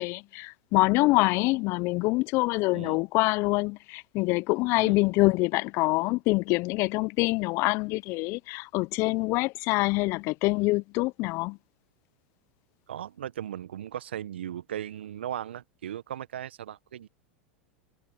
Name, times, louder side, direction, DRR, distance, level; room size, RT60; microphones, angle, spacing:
voice 1, 0.0-11.6, left 24 dB, 45° left, 0.8 m, -25 dB
voice 2, 12.9-17.1, right 10 dB, 70° right, 1.6 m, -37 dB
figure-of-eight pair, 90°, 6 cm